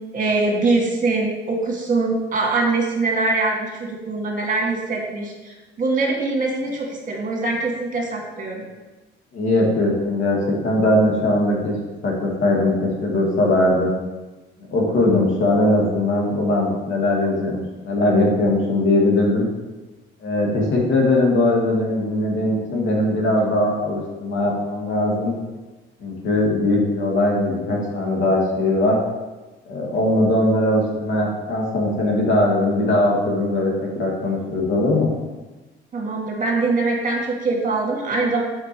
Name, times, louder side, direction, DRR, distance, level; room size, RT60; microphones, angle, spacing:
voice 1, 0.1-8.6 35.9-38.4, right 3 dB, 40° right, 0 dB, 1.8 m, -23 dB
voice 2, 9.3-11.7 12.0-13.9 14.7-19.5 20.2-25.3 26.0-29.0 29.7-35.1, left 1 dB, 70° left, -2 dB, 2.2 m, -20 dB
6.0 x 5.2 x 4.5 m, 1.2 s
cardioid pair, 85°, 21 cm